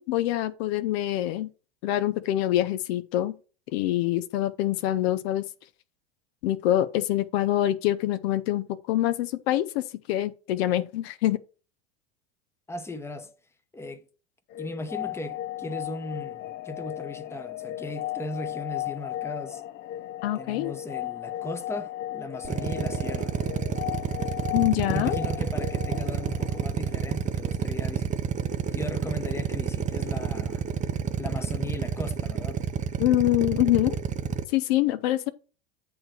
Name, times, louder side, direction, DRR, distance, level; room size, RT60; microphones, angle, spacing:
voice 1, 0.0-1.5 1.8-3.3 3.7-5.5 6.4-11.4 20.2-20.7 24.5-25.2 33.0-34.0 34.5-35.3, left 13 dB, 70° left, 0.7 m, -25 dB
voice 2, 12.7-13.3 13.7-14.0 14.6-19.6 20.3-23.4 24.9-28.2 28.7-30.6 31.2-32.6, left 2 dB, 10° left, 0.9 m, -37 dB
sound 1, 14.5-27.3, left 14 dB, 30° left, 0.4 m, -36 dB
Drill, 22.4-34.4, right 7 dB, 25° right, 0.6 m, -29 dB
8.7 x 3.2 x 6.2 m
supercardioid pair, 110°, 32 cm